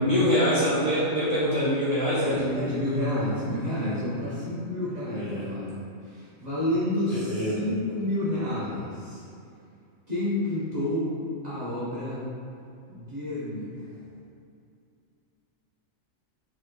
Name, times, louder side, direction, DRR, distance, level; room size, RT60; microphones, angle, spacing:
voice 1, 0.0-2.4 5.2-5.5 7.1-7.6, equal, 30° left, -12 dB, 0.9 m, -24 dB
voice 2, 2.2-9.2 10.1-11.1 11.4-12.2 12.9-14.0, left 1 dB, 35° right, -11 dB, 1.3 m, -30 dB
4.1 x 3.7 x 3.3 m, 2.4 s
omnidirectional pair, 1.4 m